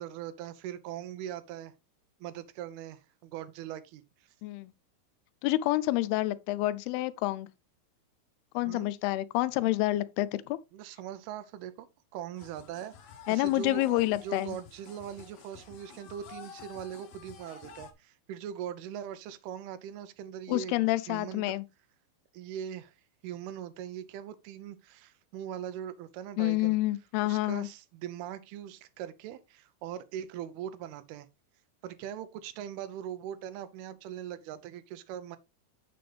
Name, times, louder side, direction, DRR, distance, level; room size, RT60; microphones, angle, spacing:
voice 1, 0.0-1.7 2.2-4.0 8.6-8.9 10.7-11.9 12.1-12.9 13.3-21.4 22.3-23.0 23.2-26.8 27.3-31.3 31.8-35.4, right 10 dB, 80° right, 2.6 m, -41 dB
voice 2, 4.4-4.7 5.4-7.5 8.5-10.6 13.3-14.5 20.5-21.7 26.4-27.7, left 17 dB, 85° left, 2.5 m, -28 dB
sound 1, 12.4-17.9, left 6 dB, 70° left, 1.6 m, -51 dB
7.7 x 6.8 x 3.3 m
omnidirectional pair, 4.5 m